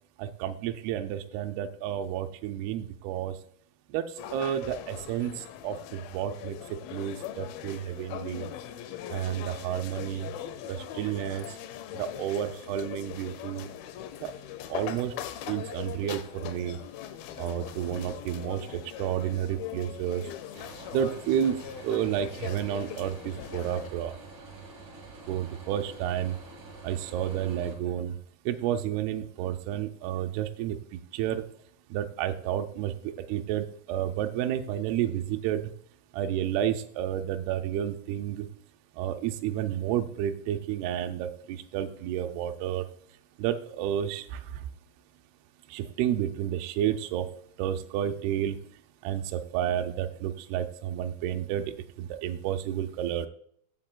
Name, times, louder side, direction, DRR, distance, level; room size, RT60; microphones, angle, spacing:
voice 1, 0.2-3.4 3.9-6.6 6.9-8.5 9.1-10.3 10.7-11.6 11.9-13.7 14.2-14.3 14.7-15.1 15.5-16.8 17.4-20.3 20.9-21.6 21.8-24.1 25.3-26.4 26.8-28.2 28.5-31.4 31.9-35.7 36.1-38.5 38.9-42.9 43.4-44.7 45.7-47.3 47.6-48.6 49.0-53.3, right 10 dB, 85° right, 6 dB, 2.6 m, -31 dB
sound 1, 4.2-23.9, left 11 dB, 80° left, 2.3 m, -41 dB
sound 2, 20.5-27.8, right 3 dB, 45° right, 1.7 m, -47 dB
15.0 x 7.5 x 2.2 m, 0.62 s
omnidirectional pair, 4.5 m